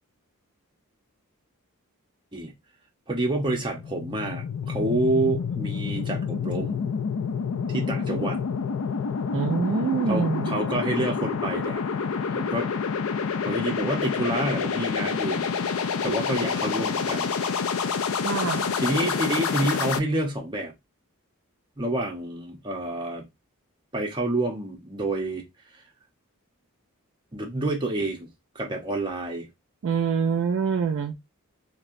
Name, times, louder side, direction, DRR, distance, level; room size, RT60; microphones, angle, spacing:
voice 1, 3.1-6.9 7.7-8.4 10.1-11.8 12.3-12.7 13.4-17.4 18.8-20.7 21.8-23.3 23.9-25.5 25.7-25.8 27.3-28.3 28.5-29.5, right 1 dB, 20° right, 0.8 m, -28 dB
sound 1, 3.5-20.0, left 6 dB, 65° left, 0.4 m, -28 dB
voice 2, 9.3-10.5 18.1-18.7 29.8-31.2, right 6 dB, 60° right, 0.4 m, -25 dB
3.1 x 2.7 x 2.5 m
head